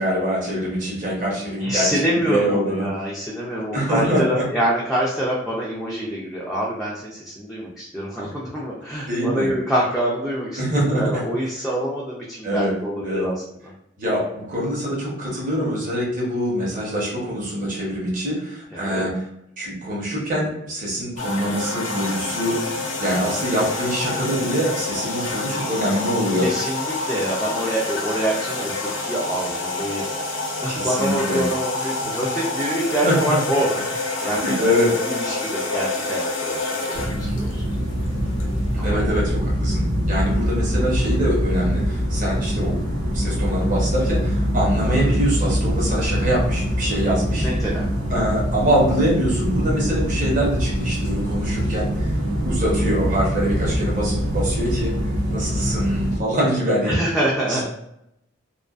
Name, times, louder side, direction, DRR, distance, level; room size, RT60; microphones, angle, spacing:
voice 1, 0.0-2.9 3.7-4.2 8.2-8.3 9.1-9.5 10.6-11.2 12.4-12.7 13.0-13.3 14.0-19.1 19.6-26.5 30.7-31.4 33.0-33.4 34.2-34.9 38.7-42.8 43.1-47.5 48.1-52.1 52.4-54.9 55.3-56.9 57.5-57.7, equal, 45° right, -5 dB, 0.9 m, -24 dB
voice 2, 1.6-13.7 18.7-19.0 26.3-30.0 30.6-34.6 35.1-37.6 38.8-39.0 47.4-47.9 56.8-57.7, right 1 dB, ahead, -7 dB, 0.3 m, -26 dB
sound 1, 21.2-38.9, left 3 dB, 80° left, 0.7 m, -28 dB
sound 2, 36.9-56.2, equal, 80° right, 1.1 m, -23 dB
2.4 x 2.2 x 2.3 m, 0.82 s
head